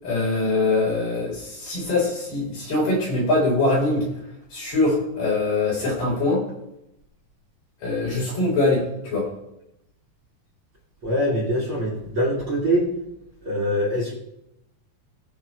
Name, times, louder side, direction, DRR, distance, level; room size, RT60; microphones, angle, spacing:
voice 1, 0.0-4.1 4.5-6.4 7.8-9.3, left 2 dB, 65° left, -5 dB, 6.5 m, -23 dB
voice 2, 11.0-12.9 13.4-14.1, equal, 35° right, -3 dB, 3.0 m, -23 dB
20.0 x 6.8 x 3.3 m, 0.82 s
omnidirectional pair, 4.2 m